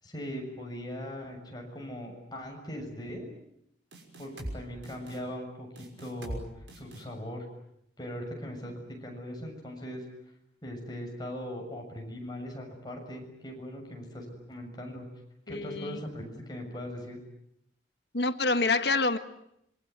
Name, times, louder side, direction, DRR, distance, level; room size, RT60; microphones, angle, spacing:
voice 1, 0.0-3.3 4.2-5.7 6.0-7.5 8.0-10.0 10.6-15.1 15.5-17.2, equal, 25° left, 1 dB, 7.0 m, -40 dB
sound 1, 3.9-4.6 4.8-5.2 5.7-6.4 6.7-7.0, right 1 dB, 85° right, 6.2 m, -40 dB
voice 2, 15.5-16.0 18.1-19.2, left 3 dB, 65° left, 11 dB, 1.5 m, -27 dB
27.0 x 23.5 x 9.5 m, 0.77 s
head